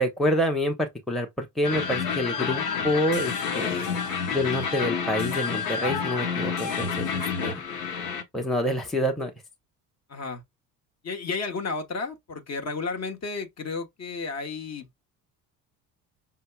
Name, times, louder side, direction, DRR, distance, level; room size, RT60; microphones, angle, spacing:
voice 1, 0.0-3.8 4.3-7.6 8.3-9.3, equal, ahead, 0.9 m, -27 dB
sound 1, 1.6-8.2, left 6 dB, 75° left, 1.1 m, -29 dB
voice 2, 3.6-4.0 7.4-7.7 10.1-10.4 11.0-14.9, left 4 dB, 30° left, 1.1 m, -33 dB
5.7 x 2.8 x 2.3 m
hypercardioid pair, 65°, 49 cm